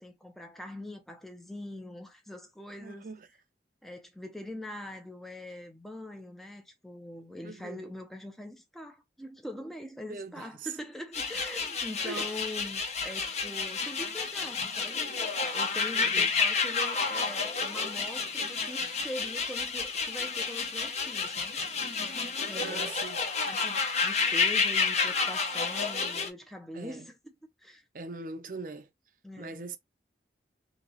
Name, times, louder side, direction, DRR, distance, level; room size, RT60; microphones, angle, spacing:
voice 1, 0.0-3.1 3.8-21.6 22.4-22.9 23.3-27.1 27.6-27.8 29.2-29.7, left 1 dB, ahead, 0.6 m, -43 dB
voice 2, 2.8-3.3 7.4-7.9 10.1-10.7 12.0-12.3 15.9-16.3 22.5-23.2 26.7-27.1 27.9-28.9 29.4-29.8, right 3 dB, 50° right, 0.6 m, -41 dB
sound 1, 11.1-26.3, left 5 dB, 40° left, 0.8 m, -30 dB
3.1 x 2.9 x 3.9 m
head